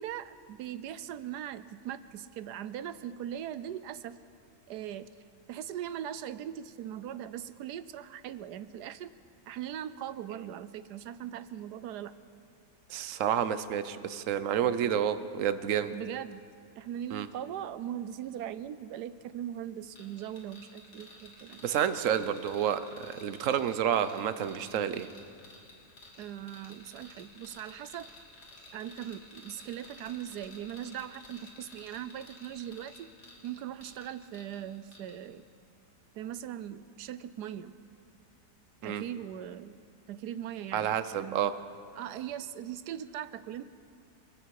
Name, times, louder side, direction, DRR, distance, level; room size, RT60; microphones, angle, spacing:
voice 1, 0.0-4.2 4.7-5.1 5.5-9.1 9.5-12.1 15.9-16.4 16.8-21.6 26.2-28.1 28.7-33.1 33.4-35.4 36.1-37.8 38.8-39.8 40.1-41.5 42.0-43.6, right 10 dB, 90° right, 14 dB, 1.3 m, -40 dB
voice 2, 12.9-15.9 17.1-17.3 21.6-25.1 38.8-39.0 40.7-41.5, right 9 dB, 60° right, 12 dB, 1.1 m, -29 dB
sound 1, 20.0-34.6 34.9-35.2, left 2 dB, 90° left, 3.3 m, -53 dB
28.0 x 20.0 x 4.8 m, 2.3 s
omnidirectional pair, 1.7 m